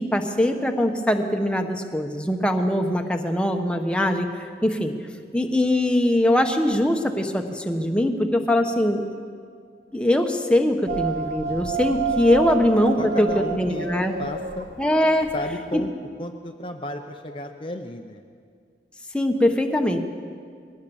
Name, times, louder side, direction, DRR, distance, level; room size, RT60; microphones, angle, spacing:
voice 1, 0.0-4.9 5.3-9.0 9.9-14.2 14.8-15.3 15.7-15.8 19.1-20.0, left 1 dB, 5° left, 4 dB, 1.1 m, -22 dB
sound 1, 10.9-15.8, right 5 dB, 75° right, 1.9 m, -30 dB
voice 2, 13.0-13.9 14.2-14.7 15.3-15.9 16.2-18.2, left 1 dB, 30° left, 4 dB, 0.8 m, -33 dB
21.5 x 18.0 x 7.1 m, 2.1 s
head